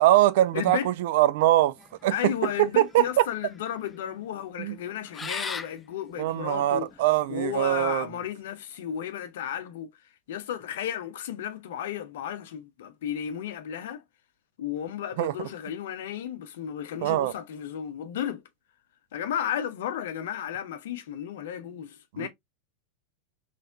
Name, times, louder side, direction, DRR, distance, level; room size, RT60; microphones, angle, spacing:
voice 1, 0.0-1.8 2.0-3.3 4.6-4.8 5.2-5.3 6.2-8.1 15.2-15.5 17.0-17.3 22.1-22.3, right 14 dB, 50° right, 0.4 m, -23 dB
voice 2, 0.5-0.9 2.1-6.9 7.3-9.9 10.3-14.0 14.6-18.4 19.1-22.3, left 10 dB, 55° left, 0.7 m, -33 dB
sound 1, 1.8-7.6, left 5 dB, 15° left, 0.4 m, -40 dB
4.2 x 3.2 x 2.5 m
figure-of-eight pair, 90°, 0 cm